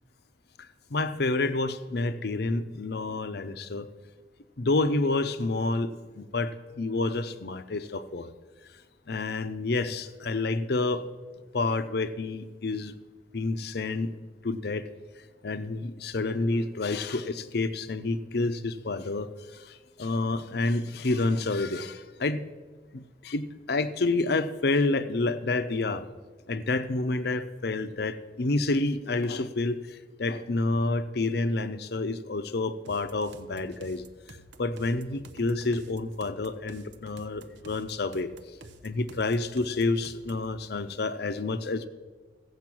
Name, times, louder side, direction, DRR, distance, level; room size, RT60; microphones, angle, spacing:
voice 1, 0.9-3.9 4.6-8.3 9.1-11.1 11.5-12.9 13.3-14.1 14.4-14.9 15.4-22.5 22.9-26.0 26.5-34.0 34.6-38.3 38.8-41.9, left 3 dB, 60° left, 12 dB, 0.7 m, -29 dB
sound 1, 32.8-40.5, right 2 dB, 85° right, 0.8 m, -50 dB
15.0 x 8.0 x 6.1 m, 1.4 s
head